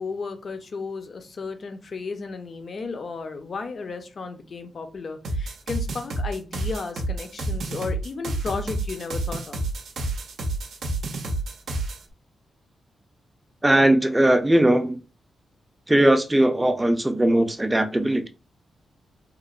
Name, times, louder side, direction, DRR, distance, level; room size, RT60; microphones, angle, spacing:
voice 1, 0.0-9.6, left 4 dB, 50° left, 0.5 m, -34 dB
sound 1, 5.2-12.0, right 2 dB, 80° right, 0.5 m, -29 dB
voice 2, 13.6-15.0 15.9-18.3, right 1 dB, 10° right, 0.4 m, -19 dB
2.8 x 2.0 x 2.4 m
cardioid pair, 105°, 0 cm